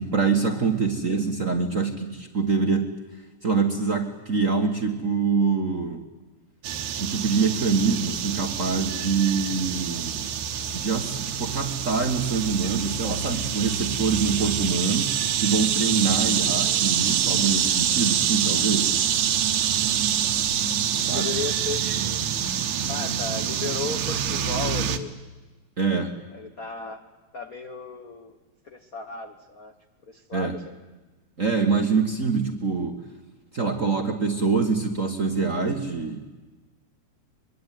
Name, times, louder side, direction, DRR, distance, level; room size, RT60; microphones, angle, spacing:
voice 1, 0.0-2.9 3.4-6.0 7.0-10.3 10.7-19.0 21.1-21.3 25.8-26.1 30.3-30.5 31.4-33.0 33.5-36.2, right 4 dB, 35° right, 4 dB, 1.3 m, -25 dB
sound 1, 6.6-25.0, right 9 dB, 70° right, 2.4 m, -26 dB
voice 2, 16.2-16.8 21.1-22.2 22.9-25.1 26.3-27.0 27.3-28.4 28.6-29.7 30.1-30.8, left 4 dB, 55° left, 6 dB, 1.0 m, -35 dB
23.5 x 23.0 x 9.2 m, 1.2 s
omnidirectional pair, 3.4 m